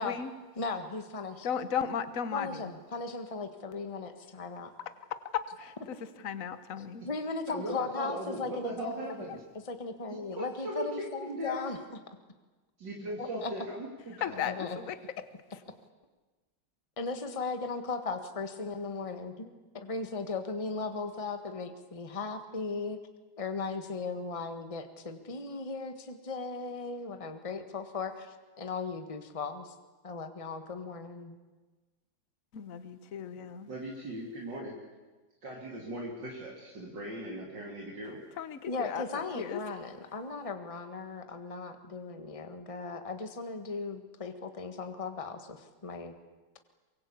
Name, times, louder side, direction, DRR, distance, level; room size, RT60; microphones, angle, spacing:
voice 1, 0.6-1.5 2.3-4.7 7.0-9.3 9.7-11.8 13.2-13.5 14.4-14.8 17.0-23.0 23.4-29.7 30.0-31.4 38.7-46.1, left 4 dB, 20° left, 7 dB, 1.5 m, -37 dB
voice 2, 1.4-2.6 5.3-6.0 6.2-7.0 14.2-15.0 32.5-33.7 38.4-39.6, left 8 dB, 50° left, 12 dB, 1.4 m, -35 dB
voice 3, 7.5-9.4 10.1-11.7 12.8-14.4 33.7-34.8 35.4-38.2, right 1 dB, 65° right, -1 dB, 3.5 m, -39 dB
23.5 x 23.5 x 8.5 m, 1.2 s
omnidirectional pair, 2.1 m